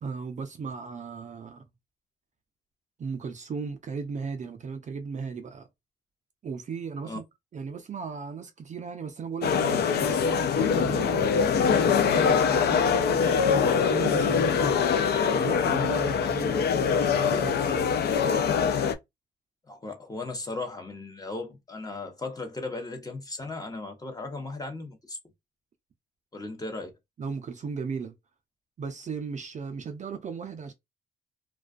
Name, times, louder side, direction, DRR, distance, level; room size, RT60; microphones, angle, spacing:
voice 1, 0.0-1.7 3.0-5.7 6.4-7.2 7.5-14.8 15.3-17.9 27.2-28.1 28.8-30.7, right 5 dB, 40° right, 0.4 m, -36 dB
sound 1, 9.4-19.0, left 6 dB, 55° left, 0.4 m, -23 dB
voice 2, 19.7-25.2 26.3-26.9, left 3 dB, 20° left, 0.7 m, -36 dB
2.3 x 2.2 x 2.4 m
cardioid pair, 90°, 20 cm